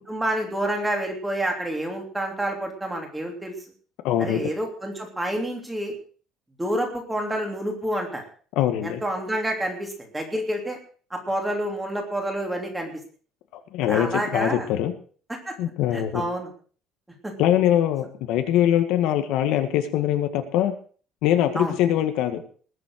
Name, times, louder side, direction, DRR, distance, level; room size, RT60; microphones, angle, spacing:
voice 1, 0.1-3.5 4.2-5.9 6.6-8.2 8.8-10.8 11.1-13.0 13.8-14.7 15.5-15.6 15.9-16.5 17.2-17.3 21.5-21.7, right 1 dB, 5° right, 2 dB, 3.1 m, -28 dB
voice 2, 4.0-4.5 8.6-9.0 13.5-14.9 15.6-16.2 17.4-20.7 21.2-22.4, left 11 dB, 65° left, 7 dB, 1.8 m, -22 dB
20.0 x 7.7 x 6.4 m, 0.43 s
cardioid pair, 180°, 0 cm